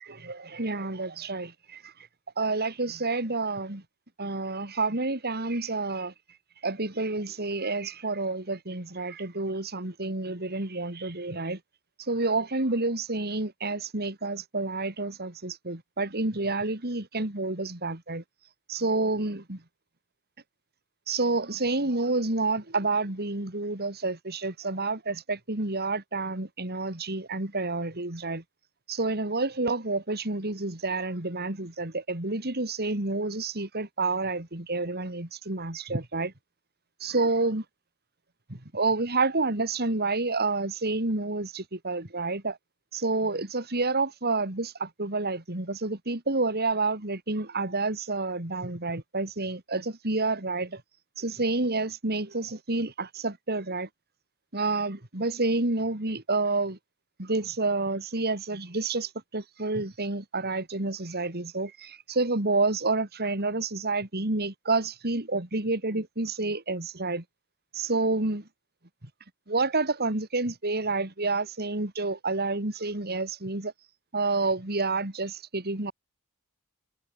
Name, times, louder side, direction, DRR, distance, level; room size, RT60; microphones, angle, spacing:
voice 1, 0.1-1.9 2.4-3.8 4.2-6.1 6.6-11.6 12.1-18.2 18.7-19.6 21.1-28.4 28.9-36.3 37.0-37.6 38.5-42.6 42.9-50.8 51.2-53.9 54.5-56.8 57.2-67.2 67.7-68.4 69.5-73.7 74.1-75.9, right 3 dB, 45° right, 3.1 m, -29 dB
head